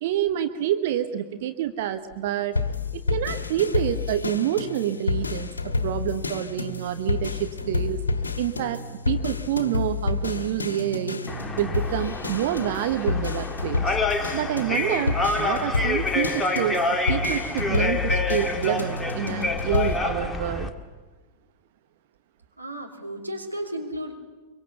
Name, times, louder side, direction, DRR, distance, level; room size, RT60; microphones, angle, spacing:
voice 1, 0.0-2.6 3.1-8.0 8.4-11.2 11.6-14.0 14.3-16.8 17.1-20.7, right 11 dB, 55° right, 10 dB, 1.0 m, -27 dB
sound 1, 2.5-20.0, left 4 dB, 75° left, 1.5 m, -29 dB
sound 2, 11.3-20.7, left 2 dB, 10° left, 1.8 m, -28 dB
voice 2, 22.6-24.1, equal, 85° right, 1 dB, 3.1 m, -33 dB
24.0 x 23.5 x 7.1 m, 1.3 s
figure-of-eight pair, 90°, 0 cm